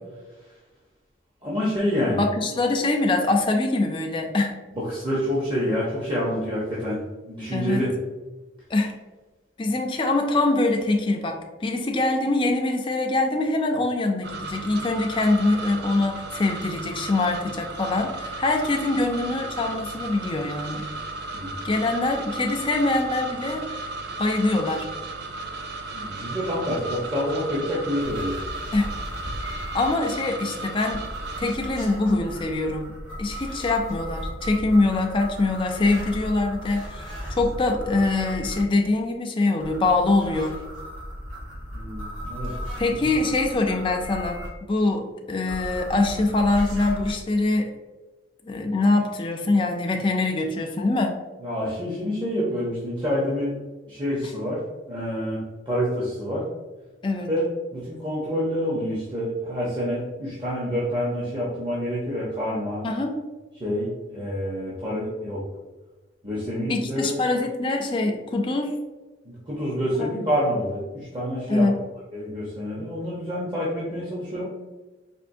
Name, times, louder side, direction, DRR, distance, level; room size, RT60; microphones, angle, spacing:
voice 1, 1.4-2.3 4.7-7.0 7.3-7.9 21.3-21.6 25.9-28.4 41.7-42.5 43.0-43.1 51.4-53.5 53.9-54.6 54.9-56.4 57.3-62.8 63.6-65.4 66.2-67.1 69.3-71.7 72.1-74.4, equal, 25° right, -7 dB, 0.7 m, -27 dB
voice 2, 2.2-4.6 7.5-7.9 8.7-8.9 9.6-20.9 21.6-23.8 24.2-24.9 28.7-29.3 29.7-31.0 31.4-32.9 33.2-40.6 42.8-47.7 48.5-51.1 57.0-57.3 62.8-63.2 66.7-68.7 69.9-70.2 71.5-71.8, left 2 dB, 25° left, 3 dB, 0.4 m, -24 dB
sound 1, 14.2-31.6, right 3 dB, 55° right, 0.3 m, -35 dB
sound 2, 28.0-29.9 30.9-38.6 39.6-44.5 45.5-47.1, equal, 75° right, 1.2 m, -36 dB
4.3 x 3.0 x 2.6 m, 1.2 s
head